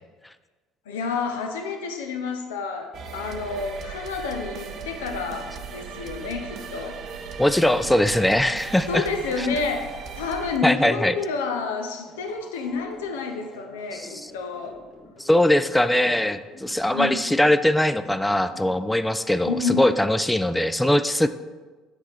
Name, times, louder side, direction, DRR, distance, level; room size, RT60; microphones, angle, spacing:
voice 1, 0.9-7.0 8.9-14.8 16.9-17.3 19.5-19.9, left 4 dB, 75° left, 5 dB, 0.6 m, -29 dB
sound 1, 2.9-10.6, right 5 dB, 50° right, 0.5 m, -37 dB
voice 2, 7.4-9.0 9.4-9.5 10.6-11.1 13.9-14.3 15.2-21.3, left 1 dB, 5° left, 12 dB, 0.3 m, -21 dB
sound 2, 12.1-19.0, left 2 dB, 45° left, 1.2 m, -47 dB
7.8 x 4.1 x 3.3 m, 1.3 s
figure-of-eight pair, 55°, 0 cm